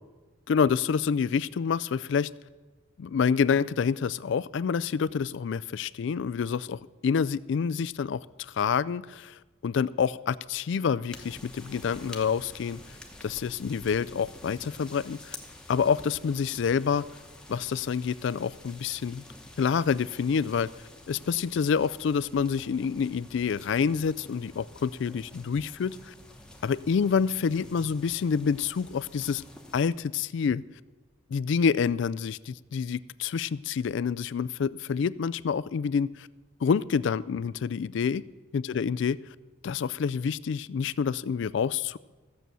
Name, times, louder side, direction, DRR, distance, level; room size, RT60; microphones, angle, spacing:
voice 1, 0.5-2.3 3.0-12.8 13.2-15.4 15.7-17.0 17.5-19.2 19.6-20.7 21.1-26.1 26.6-29.4 29.7-30.6 31.3-36.3 36.6-38.2 38.5-39.2 39.6-42.0, left 6 dB, 60° left, 19 dB, 0.3 m, -27 dB
sound 1, 11.1-29.9, left 1 dB, 5° left, 1.0 m, -49 dB
14.5 x 7.6 x 6.8 m, 1.3 s
head